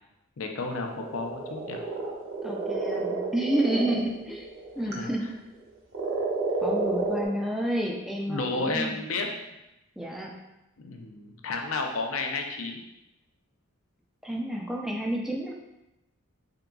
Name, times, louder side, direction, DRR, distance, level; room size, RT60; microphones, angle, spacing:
voice 1, 0.4-1.8 4.8-5.1 8.3-9.3 10.8-12.8, left 3 dB, 65° left, 2 dB, 0.5 m, -32 dB
sound 1, 0.8-5.2 5.9-7.2, right 3 dB, 65° right, 0.8 m, -31 dB
voice 2, 2.4-4.4 4.8-5.3 6.6-9.0 10.0-10.3 14.2-15.5, right 1 dB, ahead, -1 dB, 0.3 m, -30 dB
3.8 x 3.6 x 2.3 m, 0.94 s
head